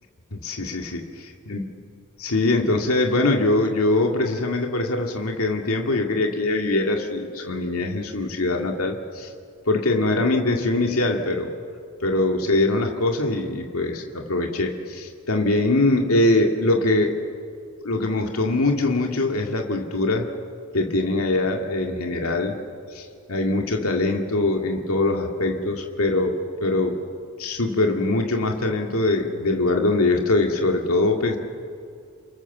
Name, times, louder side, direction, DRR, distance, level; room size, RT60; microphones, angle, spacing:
voice 1, 0.3-1.6 2.2-9.3 9.7-11.5 12.0-17.2 17.8-20.3 20.7-22.6 22.9-27.0 27.4-31.4, left 2 dB, 80° left, 2 dB, 2.2 m, -22 dB
29.0 x 24.5 x 7.3 m, 2.3 s
head